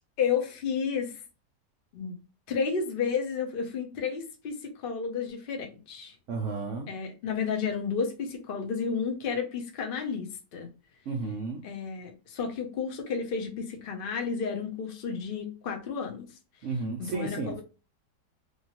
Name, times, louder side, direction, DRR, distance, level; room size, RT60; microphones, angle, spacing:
voice 1, 0.2-1.1 1.9-2.2 2.5-6.1 6.9-10.7 11.6-16.3 17.0-17.6, left 6 dB, 65° left, 0.5 m, -32 dB
voice 2, 6.3-6.9 11.1-11.6 16.6-17.6, right 4 dB, 75° right, 0.7 m, -33 dB
2.9 x 2.7 x 2.9 m
omnidirectional pair, 1.8 m